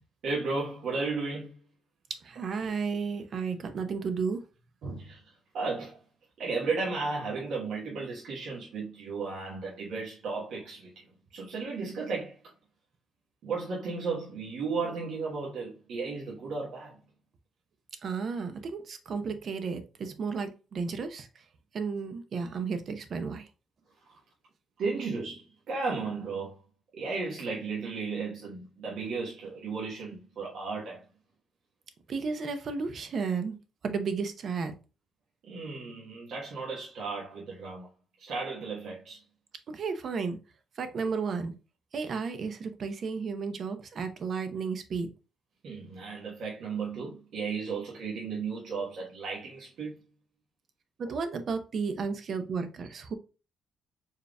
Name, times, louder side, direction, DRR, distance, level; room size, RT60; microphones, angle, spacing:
voice 1, 0.2-1.6 4.8-6.0 6.4-11.0 11.3-12.4 13.4-17.0 24.8-26.5 26.9-31.0 35.5-37.9 38.2-39.2 45.6-50.0, right 4 dB, 75° right, 1.3 m, -34 dB
voice 2, 2.1-4.4 18.0-21.3 21.7-23.5 32.1-33.6 33.8-34.7 39.7-40.4 40.8-41.5 41.9-45.1 51.0-53.1, right 5 dB, 55° right, 0.7 m, -33 dB
4.6 x 3.4 x 2.3 m
cardioid pair, 90°, 0 cm